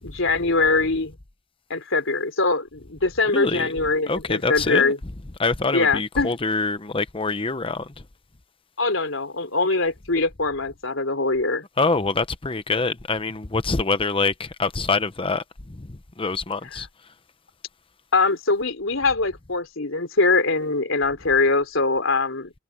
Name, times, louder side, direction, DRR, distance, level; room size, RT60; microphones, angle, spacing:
voice 1, 0.0-1.2 1.7-5.0 5.7-6.3 8.8-11.6 18.1-22.5, left 3 dB, 85° left, 3.5 m, -22 dB
voice 2, 3.3-3.7 4.1-4.9 5.4-7.9 11.8-16.9, left 3 dB, 25° left, 0.8 m, -25 dB
head